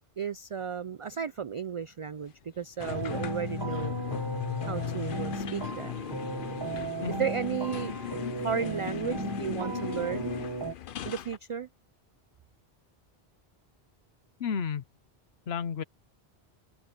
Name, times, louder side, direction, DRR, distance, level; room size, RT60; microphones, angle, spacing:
voice 1, 0.2-4.0 4.6-5.9 7.1-7.9 8.4-10.3 11.0-11.7, right 7 dB, 60° right, 0.3 m, -34 dB
sound 1, 2.8-11.4, left 10 dB, 60° left, 0.8 m, -37 dB
sound 2, 2.8-10.7, right 3 dB, 25° right, 1.1 m, -36 dB
voice 2, 14.4-14.8 15.5-15.8, left 6 dB, 80° left, 1.1 m, -32 dB
omnidirectional pair, 1.1 m